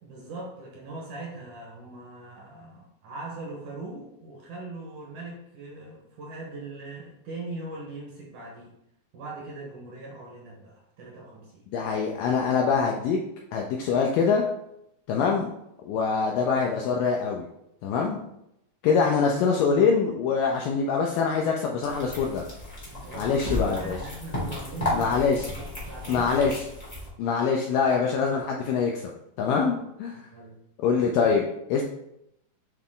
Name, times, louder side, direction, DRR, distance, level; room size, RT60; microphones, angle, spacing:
voice 1, 0.0-8.7 9.1-11.6 15.1-15.3 22.9-26.3 30.1-30.6, right 3 dB, 65° right, -2 dB, 2.3 m, -41 dB
voice 2, 11.7-13.2 13.5-14.4 15.1-15.5 15.8-17.5 17.8-18.2 18.8-22.4 23.1-24.0 24.9-25.5 26.1-26.6 27.2-29.1 29.4-30.3 30.8-31.8, left 5 dB, 80° left, 0 dB, 2.0 m, -24 dB
sound 1, 21.8-27.1, left 2 dB, 35° left, 0.6 m, -33 dB
8.7 x 3.4 x 3.7 m, 0.80 s
omnidirectional pair, 4.6 m